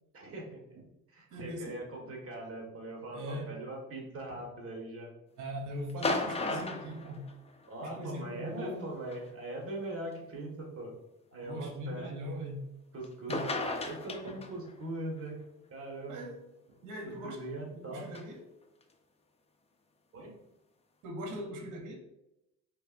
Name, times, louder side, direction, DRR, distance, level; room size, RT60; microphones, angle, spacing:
voice 1, 0.1-0.6 1.1-5.1 7.7-10.9 11.3-12.1 12.9-15.4 15.7-16.2 17.0-18.1 20.1-20.3, right 1 dB, 50° right, 0 dB, 1.4 m, -41 dB
voice 2, 1.3-2.1 3.1-3.6 4.3-4.4 5.4-7.3 7.8-8.9 11.4-12.7 13.3-13.5 14.3-14.4 16.0-18.5 21.0-22.0, equal, 85° right, 3 dB, 0.8 m, -41 dB
sound 1, 5.9-7.8 9.1-9.2 10.1-10.2 13.0-13.1 13.3-14.7 18.1-18.2, left 3 dB, 20° left, 0.5 m, -34 dB
4.6 x 3.3 x 2.4 m, 0.89 s
cardioid pair, 90°, 30 cm